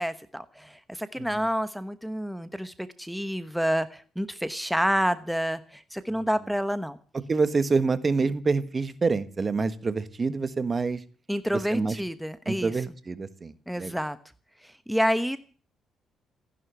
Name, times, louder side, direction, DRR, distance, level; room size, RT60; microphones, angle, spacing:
voice 1, 0.0-7.0 11.3-12.9 13.7-14.2 14.6-15.4, equal, ahead, 1.1 m, -29 dB
voice 2, 7.3-11.0 11.7-11.9 12.5-13.5 13.8-13.9, right 4 dB, 35° right, 1.4 m, -26 dB
15.0 x 11.0 x 8.1 m
cardioid pair, 90°, 0 cm